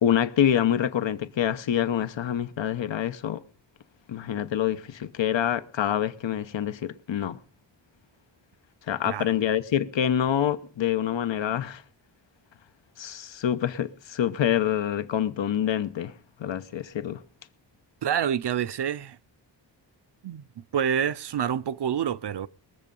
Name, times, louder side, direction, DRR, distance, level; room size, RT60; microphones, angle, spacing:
voice 1, 0.0-3.4 4.1-7.4 8.9-11.8 13.0-16.1 16.4-17.2, left 10 dB, 85° left, 1.0 m, -26 dB
voice 2, 18.0-19.2 20.2-20.4 20.7-22.5, right 8 dB, 65° right, 0.7 m, -27 dB
21.5 x 7.6 x 5.4 m
wide cardioid pair, 95°, 44 cm